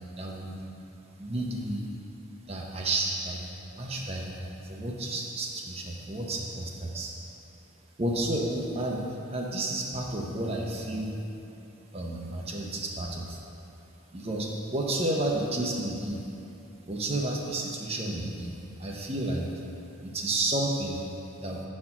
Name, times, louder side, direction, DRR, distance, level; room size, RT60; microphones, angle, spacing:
voice 1, 0.2-0.6 1.2-1.9 2.5-3.4 3.7-7.1 8.0-11.2 11.9-13.4 14.1-16.2 16.9-18.5 18.8-19.5 20.0-21.0 21.4-21.6, right 1 dB, 30° right, -1 dB, 0.6 m, -31 dB
5.0 x 4.3 x 5.7 m, 2.7 s
head